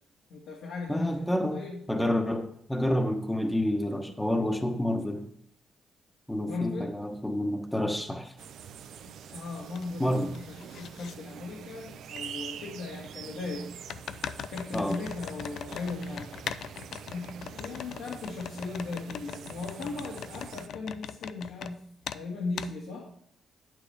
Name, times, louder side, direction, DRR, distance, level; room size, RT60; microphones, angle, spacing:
voice 1, 0.3-1.9 6.5-6.9 9.3-13.7 14.5-16.3 17.1-21.8 22.1-23.1, left 3 dB, 85° left, -3 dB, 1.9 m, -37 dB
voice 2, 0.9-1.6 1.9-5.3 6.3-8.3 10.0-10.3 14.7-15.0, left 1 dB, 5° left, 4 dB, 1.0 m, -29 dB
sound 1, 8.4-8.5 9.0-9.9 10.1-11.1 12.2-12.3 13.9-21.7 22.0-22.2 22.6-22.7, left 8 dB, 65° left, 0.4 m, -40 dB
sound 2, 8.4-20.7, right 8 dB, 75° right, 0.6 m, -45 dB
9.6 x 8.8 x 3.4 m, 0.68 s
cardioid pair, 90°, 0 cm